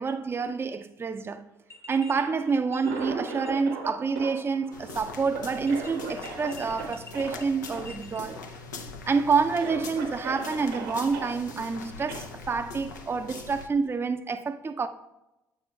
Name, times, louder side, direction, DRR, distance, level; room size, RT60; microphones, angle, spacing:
voice 1, 0.0-1.5 1.9-8.4 9.0-14.9, right 5 dB, 25° right, 0.4 m, -28 dB
sound 1, 1.7-2.2 2.5-3.7 4.0-4.1 5.3-8.2, left 3 dB, 35° left, 1.1 m, -48 dB
Cough, 2.0-3.9 4.1-6.8 7.1-7.4 7.7-7.9 8.2-8.7 9.2-9.3 9.6-11.3 12.1-12.2, right 4 dB, 90° right, 1.0 m, -38 dB
sound 2, 4.7-13.7, left 4 dB, 90° left, 0.5 m, -42 dB
7.8 x 6.8 x 2.3 m
hypercardioid pair, 50°, 9 cm